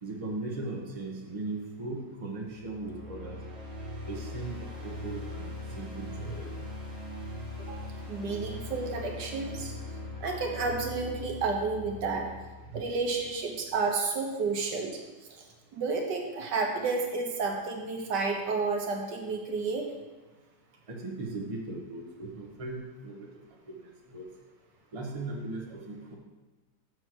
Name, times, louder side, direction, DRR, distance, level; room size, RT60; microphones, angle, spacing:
voice 1, 0.0-3.4 4.1-6.5 12.7-12.8 20.9-23.3 23.7-24.2 24.9-26.2, right 2 dB, 20° right, -1 dB, 1.1 m, -38 dB
sound 1, 2.4-13.4, left 2 dB, 40° right, 1.5 m, -41 dB
voice 2, 7.7-9.7 10.2-12.3 12.7-15.0 15.7-19.9, right 4 dB, 70° right, 2 dB, 1.6 m, -31 dB
6.5 x 6.3 x 6.2 m, 1.2 s
omnidirectional pair, 1.9 m